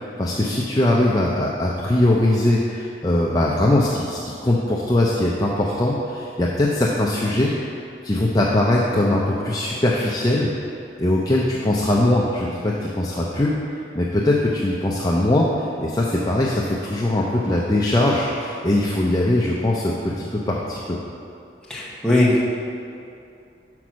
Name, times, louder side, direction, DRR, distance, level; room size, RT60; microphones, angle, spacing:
voice 1, 0.0-7.5 8.0-10.5 11.0-21.0, left 1 dB, 20° left, -4 dB, 0.5 m, -21 dB
voice 2, 21.7-22.5, left 1 dB, 5° left, -6 dB, 1.0 m, -19 dB
6.0 x 5.1 x 6.1 m, 2.6 s
head